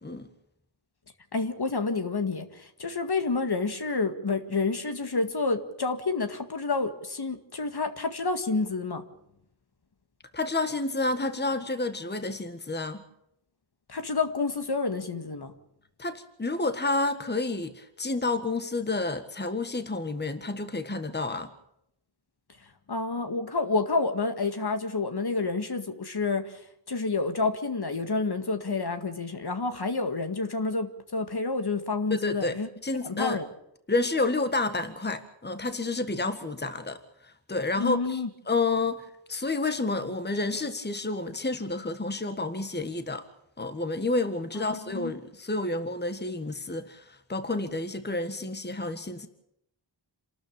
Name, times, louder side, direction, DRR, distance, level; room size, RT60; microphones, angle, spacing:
voice 1, 1.3-9.0 13.9-15.5 22.9-26.6 26.9-33.5 37.8-38.3 44.6-45.1, left 3 dB, 55° left, 2.0 m, -29 dB
voice 2, 10.3-13.0 16.0-21.5 32.1-32.6 32.8-33.4 33.9-38.2 38.5-43.2 43.6-49.3, left 2 dB, 20° left, 1.6 m, -30 dB
27.5 x 13.0 x 8.8 m
wide cardioid pair, 75°, 47 cm